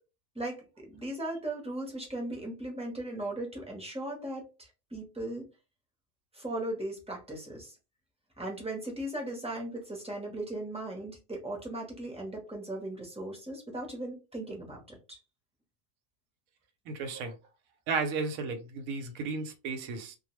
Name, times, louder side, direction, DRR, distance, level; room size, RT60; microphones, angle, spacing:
voice 1, 0.3-5.5 6.3-7.7 8.4-15.2, right 1 dB, 5° right, 0.6 m, -38 dB
voice 2, 16.9-17.3 17.9-20.2, right 4 dB, 85° right, 1.0 m, -34 dB
2.2 x 2.2 x 3.0 m
omnidirectional pair, 1.4 m